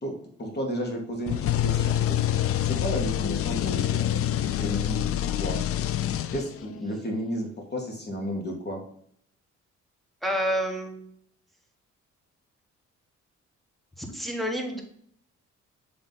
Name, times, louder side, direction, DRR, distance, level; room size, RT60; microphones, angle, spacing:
voice 1, 0.0-2.2 2.6-5.6 6.3-8.8, equal, 35° left, 1 dB, 1.9 m, -33 dB
sound 1, 1.3-6.7, left 11 dB, 50° left, 0.4 m, -26 dB
voice 2, 10.2-11.1 14.0-14.8, equal, ahead, 1 dB, 1.4 m, -29 dB
7.5 x 3.4 x 4.0 m, 0.65 s
cardioid pair, 90°, 30 cm